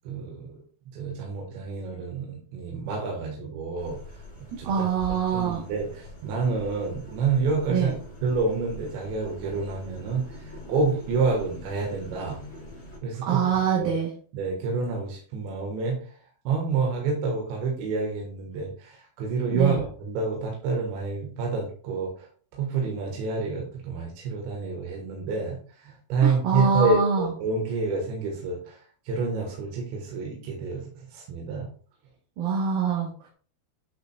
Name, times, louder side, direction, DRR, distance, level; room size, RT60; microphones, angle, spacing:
voice 1, 0.1-0.6 0.9-4.0 4.6-4.9 5.3-7.9 8.2-12.4 13.0-13.4 13.8-13.9 14.3-16.0 16.5-22.3 22.5-28.8 29.1-31.7, right 4 dB, 85° right, 0 dB, 3.7 m, -28 dB
sound 1, 3.8-13.0, equal, 25° left, 1.6 m, -43 dB
voice 2, 4.6-5.6 7.7-7.9 13.2-14.1 19.5-19.8 26.2-27.3 32.4-33.3, right 6 dB, 65° right, -1 dB, 2.7 m, -25 dB
9.8 x 5.7 x 2.3 m, 0.43 s
omnidirectional pair, 5.1 m